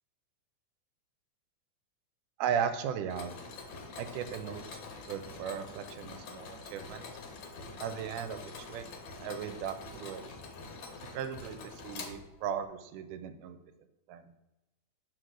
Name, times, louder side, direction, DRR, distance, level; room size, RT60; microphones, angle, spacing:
voice 1, 2.4-3.3 4.0-4.8 5.1-7.1 7.8-8.8 9.2-10.3 11.0-13.6 14.1-14.3, right 8 dB, 85° right, 10 dB, 2.1 m, -37 dB
Mechanisms, 3.1-12.6, left 4 dB, 70° left, 2.1 m, -46 dB
6.1 x 4.8 x 3.7 m, 0.98 s
omnidirectional pair, 3.6 m